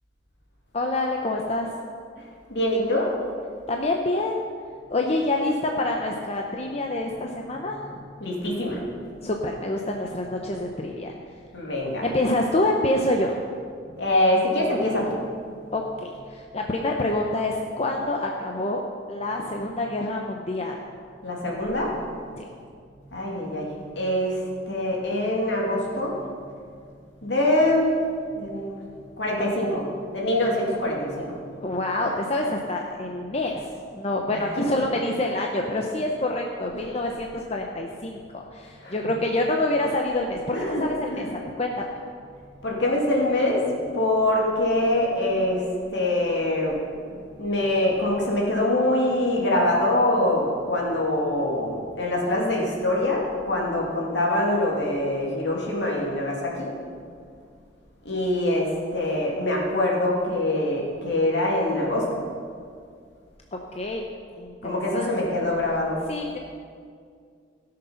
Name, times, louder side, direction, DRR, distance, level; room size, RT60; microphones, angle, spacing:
voice 1, 0.7-1.7 3.7-4.4 4.9-8.1 9.2-11.1 12.0-13.4 15.7-18.8 19.1-20.8 22.4-22.5 31.6-41.9 63.7-64.1 64.4-65.4 66.1-66.4, left 2 dB, 35° left, 1 dB, 0.7 m, -27 dB
voice 2, 2.5-3.1 8.2-8.8 11.5-12.0 14.0-15.1 21.2-21.9 23.1-23.7 24.0-24.4 24.7-26.2 27.2-27.9 28.4-28.8 29.2-29.9 30.1-31.3 34.3-34.7 36.7-36.9 38.8-38.9 40.5-41.3 42.6-43.7 43.9-45.6 45.9-46.8 47.4-56.7 58.0-62.1 64.6-66.0, left 1 dB, 65° left, -2 dB, 2.7 m, -24 dB
16.5 x 6.7 x 5.7 m, 2.2 s
head